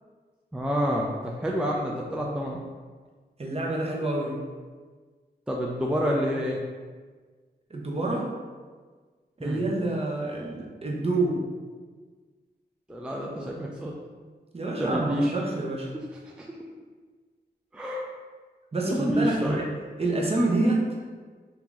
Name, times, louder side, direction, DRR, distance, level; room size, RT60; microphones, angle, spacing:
voice 1, 0.5-2.6 5.5-6.6 9.4-9.6 12.9-13.9 14.8-15.3 16.2-16.6 17.7-18.0 18.8-19.6, equal, 5° right, -2 dB, 0.3 m, -28 dB
voice 2, 3.4-4.4 7.7-8.3 9.4-11.4 14.5-15.9 18.7-19.7 20.0-20.8, right 2 dB, 35° right, -2 dB, 0.7 m, -27 dB
2.8 x 2.3 x 3.8 m, 1.5 s
cardioid pair, 65°, 18 cm